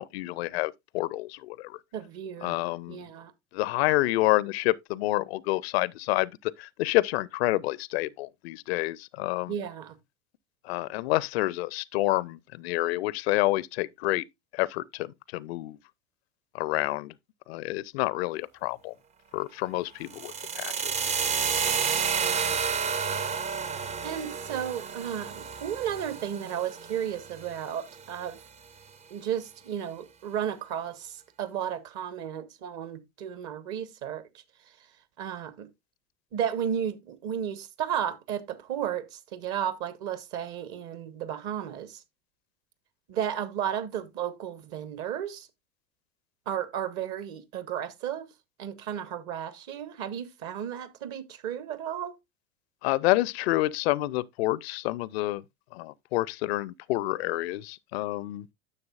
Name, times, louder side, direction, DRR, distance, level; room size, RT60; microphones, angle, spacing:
voice 1, 0.0-1.8 2.4-3.0 3.5-9.5 10.6-14.2 14.5-15.8 16.5-17.1 17.5-18.9 19.3-21.0 52.8-55.4 55.7-58.5, left 19 dB, 55° left, 0.4 m, -28 dB
voice 2, 1.9-2.6 2.9-3.3 9.5-10.0 21.9-22.6 24.0-28.4 29.1-34.3 35.2-35.7 36.3-42.0 43.1-45.5 46.5-48.3 48.6-52.2, right 9 dB, 50° right, 1.1 m, -33 dB
sound 1, 20.1-28.1, right 6 dB, 20° right, 0.4 m, -31 dB
9.8 x 6.8 x 2.4 m
figure-of-eight pair, 80°, 37 cm